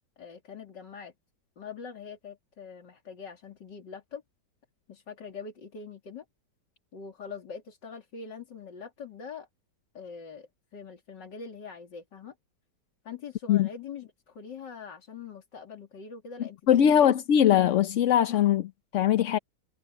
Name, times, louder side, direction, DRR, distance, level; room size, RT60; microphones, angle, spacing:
voice 1, 0.2-1.1 1.6-4.2 4.9-6.3 6.9-9.5 9.9-12.3 13.0-16.6 16.9-17.2, left 5 dB, 85° left, 3.4 m, -43 dB
voice 2, 16.7-19.4, left 10 dB, 60° left, 0.8 m, -21 dB
omnidirectional pair, 1.9 m